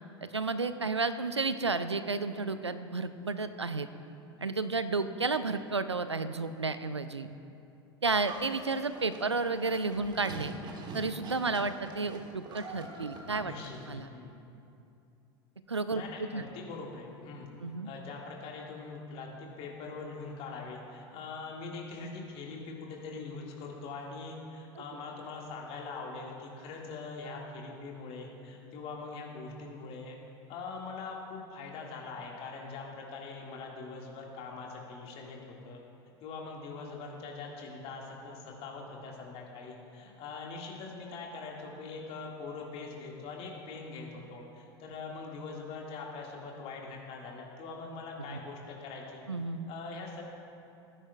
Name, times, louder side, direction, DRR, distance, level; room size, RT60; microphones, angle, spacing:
voice 1, 0.2-3.9 4.4-7.3 8.0-10.5 10.9-13.5 13.9-14.1 15.7-16.4 17.6-17.9 24.8-24.9 48.3-48.4 49.3-49.7, right 3 dB, 90° right, 11 dB, 0.4 m, -32 dB
Livestock farm animals working animals, 8.2-14.0, right 2 dB, 35° right, 1.4 m, -45 dB
voice 2, 13.4-14.4 15.9-17.5 17.8-30.2 30.5-35.4 35.6-35.8 36.2-49.2 49.7-50.2, left 4 dB, 45° left, -1 dB, 2.0 m, -42 dB
17.5 x 9.9 x 2.4 m, 2.7 s
figure-of-eight pair, 80°, 14 cm